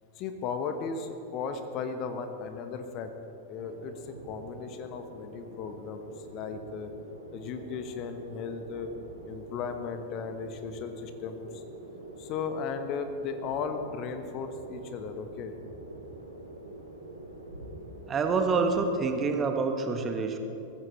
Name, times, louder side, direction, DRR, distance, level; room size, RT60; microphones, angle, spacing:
voice 1, 0.2-3.1 3.5-6.9 7.3-8.9 9.3-11.6 12.2-15.6, left 5 dB, 40° left, 8 dB, 1.1 m, -36 dB
sound 1, 3.5-19.2, right 1 dB, 80° right, 1.9 m, -46 dB
voice 2, 18.1-20.4, right 4 dB, 25° right, 5 dB, 1.2 m, -27 dB
22.0 x 14.5 x 3.2 m, 3.0 s
figure-of-eight pair, 90°, 0 cm